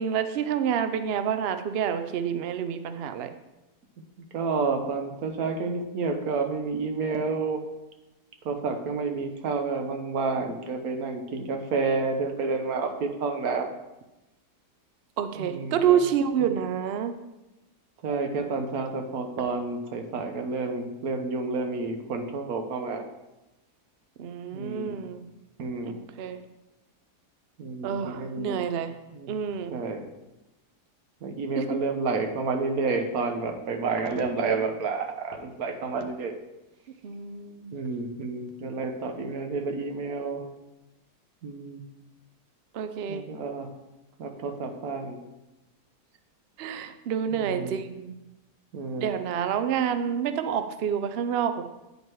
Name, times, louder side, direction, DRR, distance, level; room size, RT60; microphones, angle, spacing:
voice 1, 0.0-3.3 15.2-17.1 24.2-25.3 25.9-26.4 27.8-28.9 29.3-29.7 31.6-31.7 37.0-37.7 42.7-43.3 46.6-48.1 49.0-51.6, right 8 dB, 80° right, 9 dB, 0.5 m, -28 dB
voice 2, 4.3-7.6 8.4-13.7 15.4-16.0 18.0-23.0 24.5-25.0 25.6-25.9 27.6-28.6 29.1-29.3 29.7-30.0 31.2-36.3 37.7-40.4 41.4-41.8 43.1-43.7 44.2-45.2 47.3-47.8 48.7-49.1, right 4 dB, 65° right, 5 dB, 1.3 m, -30 dB
9.3 x 5.4 x 4.6 m, 1.0 s
omnidirectional pair, 1.8 m